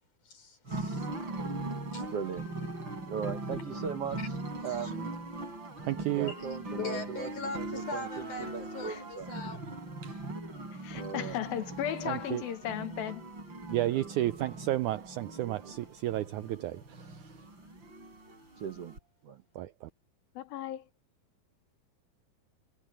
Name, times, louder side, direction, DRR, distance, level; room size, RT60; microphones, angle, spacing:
voice 1, 0.3-1.1 1.9-2.1 4.2-4.3 4.6-4.9 6.3-9.6, left 3 dB, 60° left, 7.1 m, -41 dB
sound 1, 0.7-19.0, right 2 dB, 30° right, 6.9 m, -40 dB
voice 2, 2.1-2.5 3.1-4.4 4.6-5.2 6.1-9.3 10.9-11.4 15.4-15.7 18.6-19.0 19.2-19.4, right 7 dB, 60° right, 1.6 m, -39 dB
voice 3, 5.8-6.3 10.0-10.2 12.1-12.4 13.7-17.3 19.6-19.9, right 15 dB, 85° right, 1.7 m, -32 dB
voice 4, 10.8-13.2 20.4-20.9, left 12 dB, 85° left, 3.1 m, -36 dB
omnidirectional pair, 4.1 m